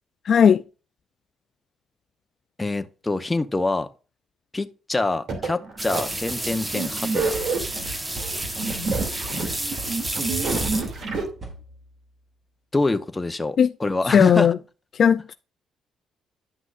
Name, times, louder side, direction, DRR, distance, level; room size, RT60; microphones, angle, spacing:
voice 1, 0.3-0.6 13.6-13.7 14.1-14.6 15.0-15.3, left 7 dB, 55° left, 0.3 m, -16 dB
voice 2, 2.6-3.9 4.5-7.4 12.7-14.6, left 2 dB, 15° left, 0.9 m, -26 dB
sound 1, 5.3-11.2, right 4 dB, 65° right, 2.5 m, -28 dB
sound 2, 5.8-11.3, right 1 dB, 20° right, 1.2 m, -31 dB
sound 3, 7.3-11.9, right 2 dB, 40° right, 3.0 m, -40 dB
11.0 x 6.0 x 2.5 m
cardioid pair, 90°, 0 cm